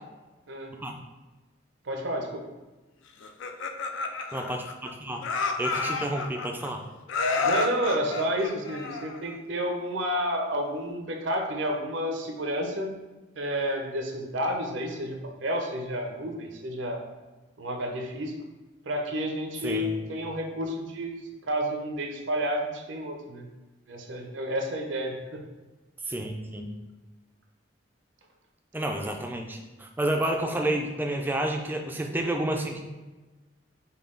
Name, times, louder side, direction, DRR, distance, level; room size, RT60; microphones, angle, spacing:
voice 1, 1.9-2.4 7.3-13.0 13.4-17.0 17.6-18.3 18.9-21.1 21.5-23.5 23.9-25.4, equal, 70° right, 3 dB, 0.7 m, -30 dB
Laughter, 3.2-4.9 5.2-6.7 7.1-9.4, left 4 dB, 70° left, 0.4 m, -30 dB
voice 2, 4.3-5.2 5.6-6.8 19.6-19.9 26.1-26.7 28.7-32.8, right 1 dB, 10° right, 2 dB, 0.4 m, -30 dB
5.4 x 2.3 x 3.8 m, 1.2 s
head